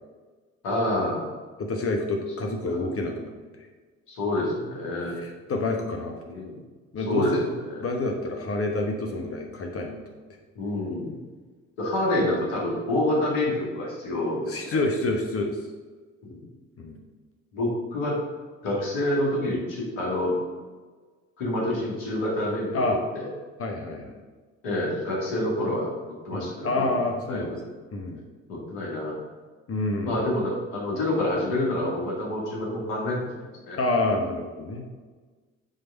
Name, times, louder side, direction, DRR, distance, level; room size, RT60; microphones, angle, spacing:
voice 1, 0.6-1.3 2.7-2.8 4.1-5.2 6.3-6.6 7.1-7.8 10.6-11.2 11.8-14.8 16.2-16.5 17.5-18.2 18.6-20.4 21.4-22.8 23.1-23.3 24.6-27.0 27.3-27.6 28.5-29.2 30.1-33.3 33.7-33.8, left 1 dB, 70° left, -3 dB, 2.1 m, -27 dB
voice 2, 1.6-3.7 5.1-6.3 6.9-7.5 7.8-10.0 14.5-15.6 16.8-17.0 22.7-23.0 23.6-24.2 26.3-27.6 27.9-28.2 29.7-30.2 33.7-34.8, left 2 dB, 40° left, 2 dB, 1.1 m, -28 dB
7.5 x 3.5 x 5.3 m, 1.4 s
figure-of-eight pair, 50°, 37 cm